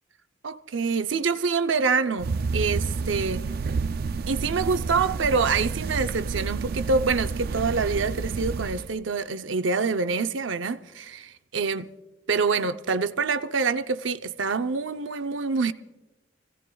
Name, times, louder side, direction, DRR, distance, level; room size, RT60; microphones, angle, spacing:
voice 1, 0.4-3.4 4.3-11.9 12.3-15.7, right 4 dB, 90° right, 0.7 m, -26 dB
sound 1, 2.2-8.9, right 4 dB, 55° right, 0.4 m, -30 dB
29.0 x 17.0 x 2.3 m
head